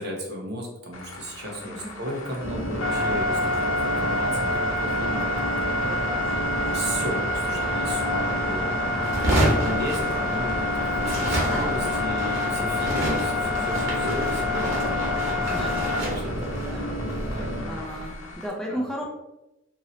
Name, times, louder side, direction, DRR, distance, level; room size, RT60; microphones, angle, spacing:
voice 1, 0.0-5.5 6.7-14.8 15.7-16.6 17.3-17.8 18.7-18.8, equal, 55° right, -1 dB, 0.8 m, -35 dB
sound 1, 0.9-18.5, left 2 dB, 90° left, 0.7 m, -28 dB
sound 2, 2.4-17.6, equal, 35° right, 1.2 m, -32 dB
voice 2, 5.8-6.6 14.9-15.9 16.1-16.9 17.2-19.0, equal, 5° left, -2 dB, 0.4 m, -37 dB
sound 3, 9.0-10.6 10.9-18.1, right 1 dB, 85° right, 1.2 m, -29 dB
3.0 x 2.7 x 2.7 m, 0.92 s
head